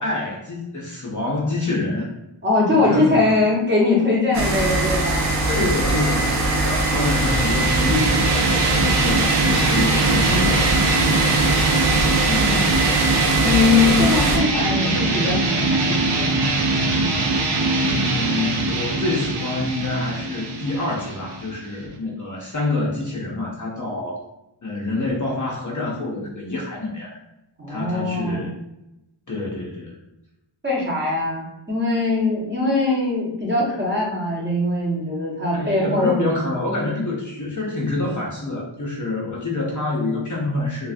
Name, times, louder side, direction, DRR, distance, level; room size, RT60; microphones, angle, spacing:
voice 1, 0.0-2.1 2.7-3.3 5.4-8.6 8.8-11.5 12.2-13.1 17.7-24.2 24.6-27.2 27.7-28.6 29.3-30.0 35.5-40.9, left 2 dB, 40° left, -3 dB, 0.5 m, -27 dB
voice 2, 2.4-5.3 12.4-12.6 13.4-16.3 27.6-28.5 30.6-36.3, left 3 dB, 20° right, -5 dB, 0.9 m, -21 dB
sound 1, 4.3-14.4, right 2 dB, 35° right, 0.4 m, -21 dB
sound 2, 6.6-21.9, right 2 dB, 90° right, 0.7 m, -23 dB
3.3 x 2.4 x 2.4 m, 0.89 s
wide cardioid pair, 170°, 49 cm